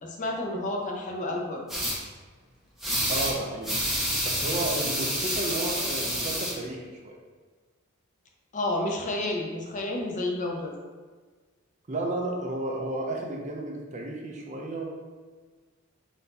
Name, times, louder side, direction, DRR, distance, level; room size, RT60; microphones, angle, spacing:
voice 1, 0.0-1.6 8.5-10.7, left 1 dB, 35° left, 0 dB, 0.6 m, -30 dB
sound 1, 1.7-2.0 2.8-3.3 3.6-6.5, equal, ahead, 0.8 m, -28 dB
voice 2, 3.1-3.8 4.2-7.2 11.9-14.8, right 2 dB, 35° right, 0 dB, 0.5 m, -32 dB
4.3 x 2.7 x 3.9 m, 1.4 s
head